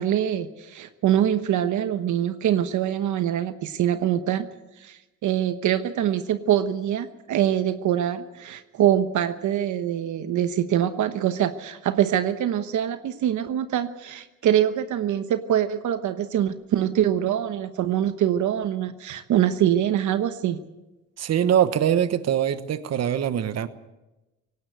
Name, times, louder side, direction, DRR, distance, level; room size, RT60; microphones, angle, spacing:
voice 1, 0.0-4.5 4.8-20.6, right 10 dB, 75° right, 10 dB, 1.1 m, -24 dB
voice 2, 21.2-23.7, right 9 dB, 55° right, 12 dB, 1.2 m, -23 dB
18.5 x 17.5 x 8.1 m, 1.0 s
cardioid pair, 90°, 30 cm